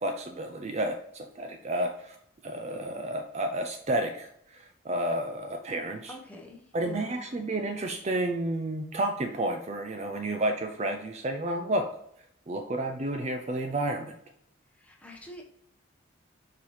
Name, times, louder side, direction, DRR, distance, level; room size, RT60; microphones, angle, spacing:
voice 1, 0.0-2.2 2.4-6.1 6.7-11.9 12.5-14.2, right 1 dB, 30° right, 5 dB, 0.5 m, -31 dB
voice 2, 6.1-7.2 14.7-15.4, left 1 dB, 5° left, 0 dB, 1.0 m, -46 dB
6.7 x 4.7 x 3.2 m, 0.72 s
head